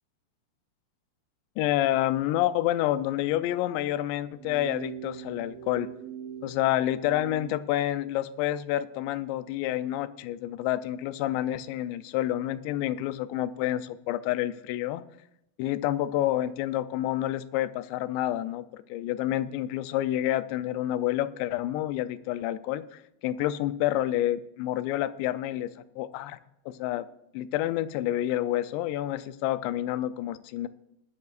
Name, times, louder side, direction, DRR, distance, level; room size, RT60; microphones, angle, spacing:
voice 1, 1.6-5.9 6.4-15.0 15.6-25.7 26.0-26.4 26.7-27.1 27.3-30.7, left 13 dB, 85° left, 13 dB, 2.8 m, -28 dB
sound 1, 4.4-7.6, right 10 dB, 80° right, 2.2 m, -41 dB
19.0 x 12.0 x 2.5 m, 0.80 s
omnidirectional pair, 5.0 m